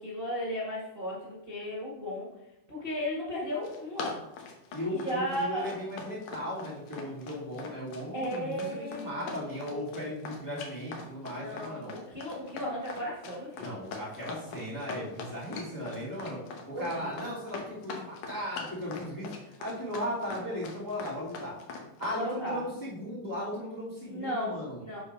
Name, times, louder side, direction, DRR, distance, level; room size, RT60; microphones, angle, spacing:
voice 1, 0.0-2.3 2.7-4.2 4.8-5.8 8.1-9.7 11.3-13.8 16.7-17.1 22.1-22.6 24.0-24.6 24.9-25.0, equal, 80° right, -5 dB, 0.5 m, -35 dB
Run, 3.4-22.2, left 4 dB, 70° left, 2.2 m, -42 dB
voice 2, 4.7-11.9 13.6-16.4 16.7-19.3 19.6-21.6 22.0-24.8, equal, 5° left, -8 dB, 1.9 m, -37 dB
7.0 x 3.7 x 5.3 m, 0.90 s
omnidirectional pair, 3.8 m